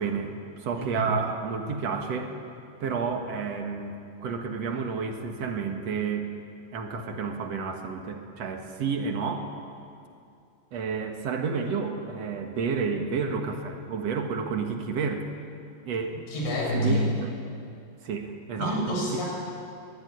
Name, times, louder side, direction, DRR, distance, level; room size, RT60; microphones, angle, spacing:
voice 1, 0.0-2.3 2.8-6.3 6.7-9.5 10.7-15.3 15.9-16.2 16.7-17.3 18.0-19.0, right 5 dB, 55° right, 4 dB, 2.0 m, -30 dB
voice 2, 0.7-1.1 16.3-17.0 18.6-19.3, equal, 75° left, -2 dB, 8.4 m, -27 dB
23.0 x 19.0 x 10.0 m, 2.5 s
omnidirectional pair, 5.0 m